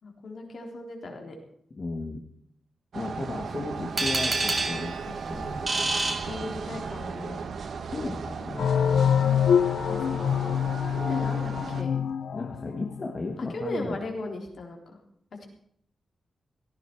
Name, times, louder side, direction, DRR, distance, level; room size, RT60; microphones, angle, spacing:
voice 1, 0.0-1.4 6.3-7.4 9.9-10.5 10.9-11.9 13.5-15.0 15.4-15.5, left 2 dB, 50° left, 2 dB, 3.6 m, -37 dB
voice 2, 1.8-2.2 2.9-6.5 7.9-9.4 12.3-14.0, left 3 dB, 30° left, 1 dB, 1.6 m, -36 dB
sound 1, 2.9-11.8, right 5 dB, 60° right, 1.1 m, -36 dB
sound 2, 4.0-7.0, right 3 dB, 30° right, 2.3 m, -29 dB
sound 3, 8.6-13.1, left 8 dB, 80° left, 0.7 m, -25 dB
17.5 x 15.0 x 4.6 m, 0.68 s
wide cardioid pair, 180°, 0 cm